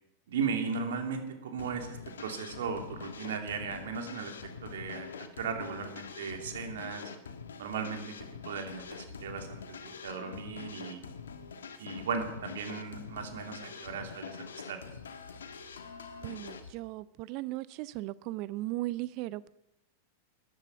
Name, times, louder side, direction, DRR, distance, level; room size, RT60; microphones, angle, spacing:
voice 1, 0.3-5.1 5.4-7.1 7.6-8.0 8.4-11.0 11.8-14.4 14.7-14.8, right 5 dB, 75° right, 2.9 m, -36 dB
sound 1, 1.6-16.7, left 5 dB, 85° left, 1.5 m, -45 dB
voice 2, 16.2-19.5, right 17 dB, 50° right, 0.5 m, -37 dB
14.0 x 10.5 x 8.5 m
hypercardioid pair, 105°, 0 cm